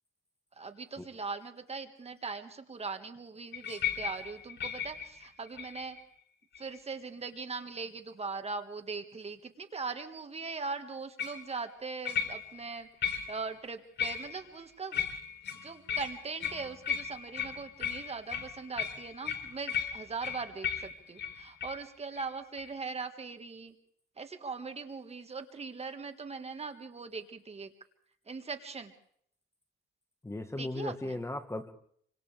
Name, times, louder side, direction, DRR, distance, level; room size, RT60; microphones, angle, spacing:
voice 1, 0.6-6.0 6.6-15.0 15.6-23.8 24.2-27.7 28.3-28.9 30.6-31.2, right 4 dB, 30° right, 7 dB, 1.9 m, -40 dB
sound 1, 3.5-6.0 6.5-7.0 11.2-11.5 12.1-12.7 13.0-13.5 14.0-14.6 14.9-21.8 22.2-22.3 22.6-22.7, left 8 dB, 65° left, 3.5 m, -36 dB
voice 2, 30.2-31.7, left 1 dB, 15° left, 8 dB, 1.6 m, -36 dB
29.0 x 25.5 x 3.5 m, 0.65 s
cardioid pair, 90°, 20 cm